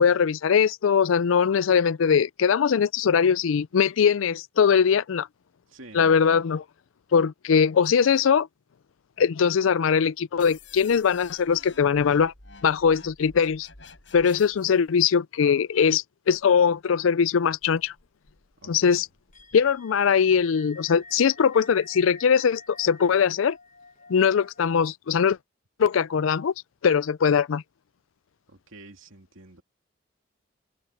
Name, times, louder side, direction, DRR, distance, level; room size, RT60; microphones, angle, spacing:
voice 1, 0.0-5.3 5.9-6.6 7.1-8.5 9.2-12.3 12.6-13.7 14.1-17.9 18.7-19.1 19.5-23.6 24.1-25.4 25.8-26.5 26.8-27.6, left 6 dB, 90° left, 0.4 m, -21 dB
voice 2, 5.7-6.2 18.6-19.0 28.5-29.6, right 2 dB, 90° right, 2.6 m, -48 dB
sound 1, 10.4-14.8, left 4 dB, 70° left, 7.9 m, -49 dB
sound 2, 16.3-16.8 17.1-17.2 17.4-24.7, left 3 dB, 40° left, 1.5 m, -50 dB
open air
head